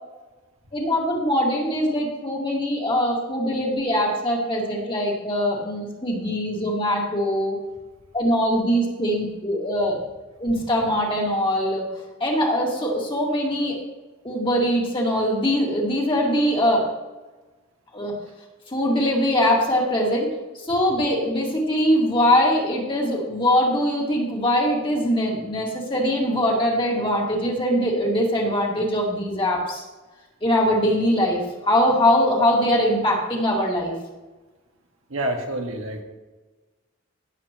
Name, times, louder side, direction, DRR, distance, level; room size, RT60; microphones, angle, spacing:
voice 1, 0.7-7.6 8.1-10.0 10.4-11.8 12.2-13.8 14.2-16.9 17.9-18.1 18.7-20.3 20.6-29.8 30.4-31.4 31.7-33.9, equal, 25° left, -2 dB, 2.1 m, -22 dB
voice 2, 35.1-36.0, right 1 dB, 90° right, 2 dB, 1.7 m, -27 dB
16.0 x 7.6 x 3.0 m, 1.2 s
head